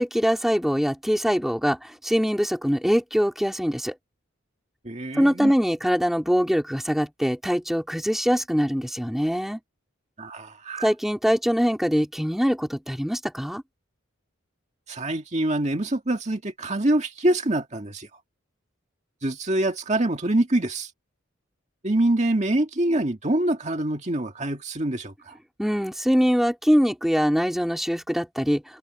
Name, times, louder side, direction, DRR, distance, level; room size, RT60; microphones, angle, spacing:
voice 1, 0.0-4.0 5.2-9.6 10.8-13.6 25.6-28.8, equal, ahead, 2.5 m, -23 dB
voice 2, 4.8-5.5 10.2-10.9 14.9-18.1 19.2-20.9 21.8-25.3, right 1 dB, 35° right, 2.0 m, -25 dB
open air
head